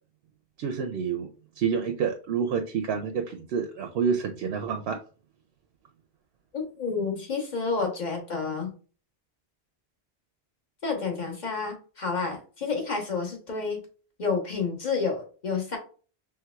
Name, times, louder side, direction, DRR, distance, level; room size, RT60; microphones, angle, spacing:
voice 1, 0.6-1.3 1.6-5.0, right 6 dB, 75° right, 6 dB, 0.8 m, -28 dB
voice 2, 6.5-8.7 10.8-13.8 14.2-15.8, left 4 dB, 45° left, 2 dB, 1.2 m, -30 dB
4.6 x 3.3 x 2.3 m, 0.38 s
omnidirectional pair, 1.1 m